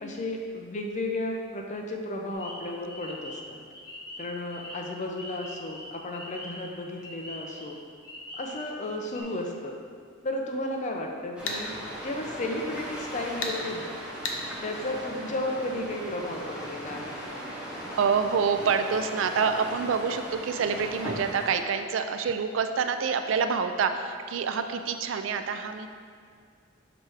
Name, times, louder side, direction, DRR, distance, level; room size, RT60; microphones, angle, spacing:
voice 1, 0.0-3.6 4.2-7.8 8.4-9.8 10.2-11.7 12.0-14.0 14.6-17.4, left 1 dB, 40° left, 1 dB, 0.6 m, -33 dB
sound 1, 2.3-8.9 9.1-9.2, left 1 dB, 20° left, 1.3 m, -43 dB
sound 2, 11.4-21.6, equal, 5° right, 0.9 m, -38 dB
sound 3, 11.5-11.6 13.4-13.6 14.2-14.4, left 3 dB, 80° left, 0.7 m, -30 dB
voice 2, 18.0-25.9, right 6 dB, 80° right, 8 dB, 0.4 m, -27 dB
5.9 x 3.3 x 4.8 m, 2.1 s
head